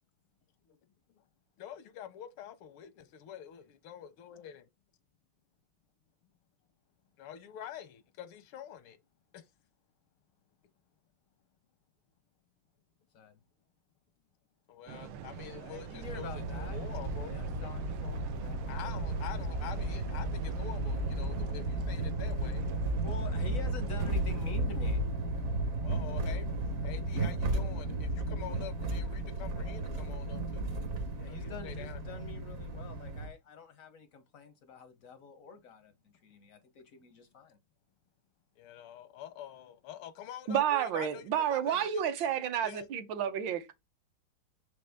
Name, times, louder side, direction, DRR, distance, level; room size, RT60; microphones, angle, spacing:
voice 1, 1.6-4.6 7.2-9.0 9.3-9.4 14.7-17.4 18.7-22.6 25.8-26.5 26.8-30.7 31.2-32.2 38.6-42.0 42.6-42.9, left 10 dB, 90° left, 1.6 m, -46 dB
sound 1, 14.9-24.5, right 6 dB, 90° right, 1.5 m, -44 dB
voice 2, 15.6-16.8 17.2-19.0 21.3-21.5 23.0-25.0 31.2-37.6, left 5 dB, 70° left, 0.8 m, -47 dB
sound 2, 16.0-33.3, right 2 dB, 50° right, 1.1 m, -34 dB
voice 3, 40.5-43.7, right 9 dB, 70° right, 1.4 m, -30 dB
6.0 x 5.3 x 3.4 m
omnidirectional pair, 2.3 m